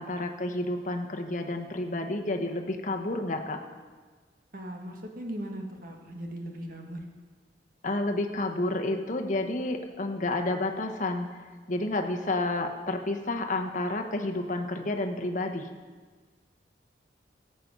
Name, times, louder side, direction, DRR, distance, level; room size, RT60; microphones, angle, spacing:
voice 1, 0.0-3.6 7.8-15.7, left 2 dB, 45° left, 4 dB, 1.1 m, -30 dB
voice 2, 4.5-7.0, right 1 dB, 50° right, 2 dB, 1.6 m, -38 dB
16.5 x 7.8 x 5.4 m, 1.4 s
head